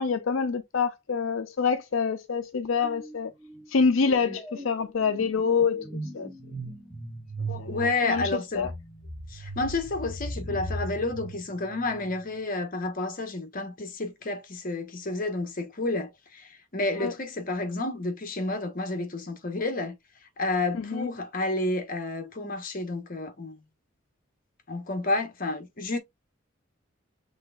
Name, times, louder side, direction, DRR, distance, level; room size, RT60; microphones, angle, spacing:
voice 1, 0.0-3.3 3.7-6.3 7.6-8.7 17.0-17.1 20.7-21.1, left 5 dB, 75° left, 0.5 m, -26 dB
sound 1, 2.8-3.2 3.4-12.2, right 1 dB, ahead, 1.0 m, -38 dB
voice 2, 7.5-8.7 9.3-20.0 20.4-23.6 24.7-26.0, left 2 dB, 45° left, 1.1 m, -30 dB
6.1 x 3.4 x 2.4 m
head